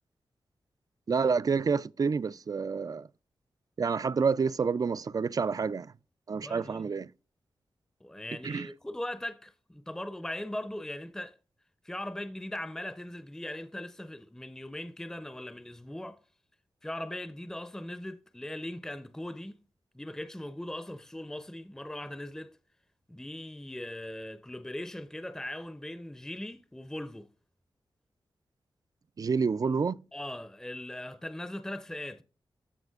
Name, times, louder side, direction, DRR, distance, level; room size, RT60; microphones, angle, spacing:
voice 1, 1.1-3.1 3.8-5.9 6.3-7.1 8.4-8.7 29.2-30.0, right 5 dB, 45° right, 0.3 m, -28 dB
voice 2, 6.4-6.9 8.0-11.4 11.8-16.2 16.8-19.6 19.9-22.6 23.1-27.3 30.1-32.2, left 1 dB, 5° left, 0.6 m, -39 dB
14.5 x 4.9 x 2.4 m
cardioid pair, 65°, 9 cm